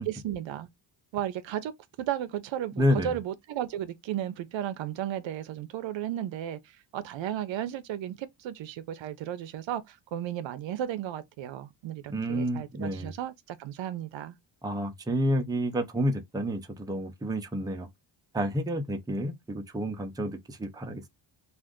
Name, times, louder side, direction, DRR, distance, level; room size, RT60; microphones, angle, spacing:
voice 1, 0.1-0.7 1.1-1.7 2.0-14.4, right 11 dB, 70° right, 0.6 m, -34 dB
voice 2, 2.8-3.2 12.1-13.1 14.6-17.9 18.3-21.0, equal, 10° right, 0.5 m, -29 dB
2.5 x 2.4 x 3.5 m
cardioid pair, 110°, 48 cm